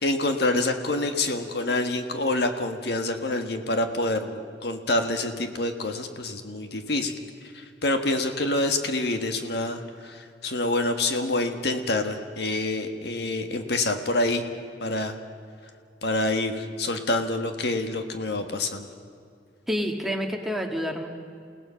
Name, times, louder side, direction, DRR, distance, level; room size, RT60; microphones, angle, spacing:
voice 1, 0.0-7.1 7.5-14.4 14.8-15.1 16.0-18.9, left 2 dB, 65° left, 6 dB, 1.6 m, -27 dB
voice 2, 19.7-21.1, equal, ahead, 2 dB, 1.9 m, -28 dB
29.5 x 17.5 x 5.7 m, 2.4 s
head